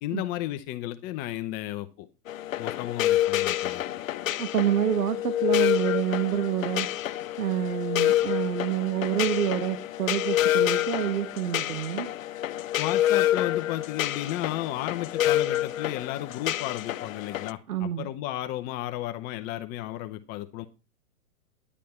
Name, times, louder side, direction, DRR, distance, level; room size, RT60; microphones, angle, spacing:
voice 1, 0.0-2.1 2.6-3.8 4.2-4.3 12.8-20.7, left 14 dB, 20° left, 9 dB, 0.6 m, -33 dB
sound 1, 2.3-17.5, left 13 dB, 60° left, 0.9 m, -27 dB
voice 2, 4.4-6.9 7.4-12.1 17.7-18.1, right 10 dB, 75° right, 11 dB, 1.5 m, -27 dB
11.0 x 10.0 x 4.3 m, 0.31 s
hypercardioid pair, 135°, 45 cm